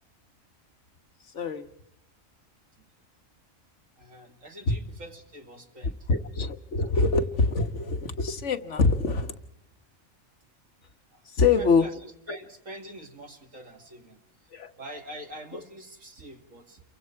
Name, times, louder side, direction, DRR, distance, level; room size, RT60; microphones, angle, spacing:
voice 1, 4.0-6.1 11.1-11.3 11.5-14.5 14.8-16.8, right 1 dB, 75° right, 3 dB, 3.0 m, -45 dB
voice 2, 6.1-9.3 11.3-11.9 12.3-12.4 14.5-14.7 15.5-15.6, left 4 dB, 60° left, 7 dB, 1.7 m, -24 dB
29.5 x 24.0 x 4.6 m, 0.82 s
omnidirectional pair, 1.4 m